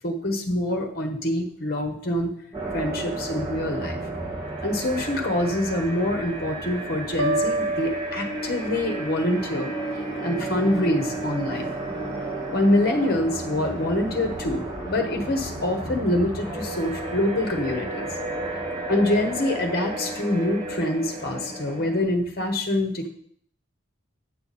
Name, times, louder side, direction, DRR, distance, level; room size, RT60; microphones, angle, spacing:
voice 1, 0.0-2.3 2.7-4.0 4.6-9.7 10.2-11.7 12.5-18.1 18.9-23.1, left 1 dB, 50° left, 3 dB, 1.1 m, -25 dB
sound 1, 2.5-22.0, right 2 dB, 20° right, 3.0 m, -33 dB
sound 2, 7.2-9.1, right 1 dB, 80° right, 0.9 m, -28 dB
9.1 x 6.8 x 4.2 m, 0.63 s
head